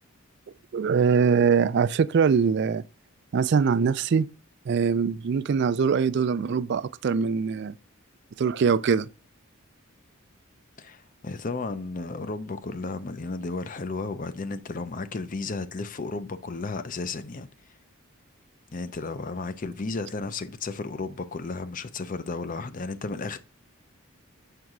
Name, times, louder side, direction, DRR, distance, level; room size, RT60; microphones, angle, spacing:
voice 1, 0.7-2.8 3.3-4.3 4.7-7.7 8.4-9.1, right 6 dB, 50° right, 0.3 m, -22 dB
voice 2, 10.8-17.5 18.7-23.4, left 3 dB, 40° left, 0.5 m, -33 dB
6.4 x 4.6 x 3.6 m
head